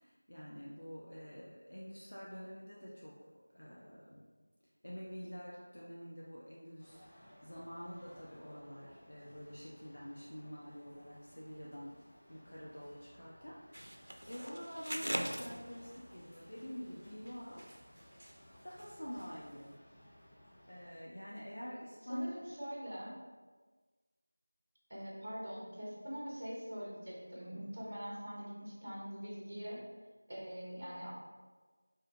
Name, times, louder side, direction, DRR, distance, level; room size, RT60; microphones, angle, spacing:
voice 1, 0.0-4.2 4.8-12.0 12.3-17.6 18.6-19.8 20.6-22.3, equal, 80° left, -5 dB, 0.6 m, -47 dB
sound 1, 6.8-21.0, equal, 10° left, 0.3 m, -60 dB
sound 2, 13.7-16.2 17.0-18.4 18.7-18.9 19.2-19.3, equal, 85° right, 0.4 m, -42 dB
voice 2, 22.1-23.1 24.9-29.8 30.3-31.1, equal, 25° right, -5 dB, 0.9 m, -43 dB
4.2 x 2.5 x 2.5 m, 1.4 s
figure-of-eight pair, 175°, 0 cm